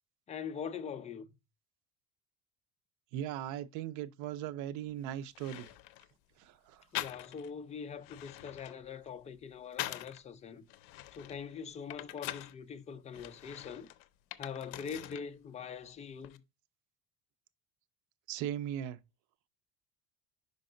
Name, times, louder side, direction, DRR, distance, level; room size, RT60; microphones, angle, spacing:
voice 1, 0.3-1.3 6.9-10.7 11.1-13.9 14.4-16.4, left 6 dB, 20° left, 0.5 m, -43 dB
voice 2, 3.1-5.7 6.4-6.8 18.3-19.0, right 11 dB, 70° right, 0.6 m, -38 dB
sound 1, 4.9-5.0 5.3-6.1 6.9-7.6 7.9-10.2 10.7-12.6 13.1-15.3 15.6-16.4, left 15 dB, 90° left, 0.6 m, -44 dB
5.4 x 5.1 x 3.8 m
cardioid pair, 145°, 31 cm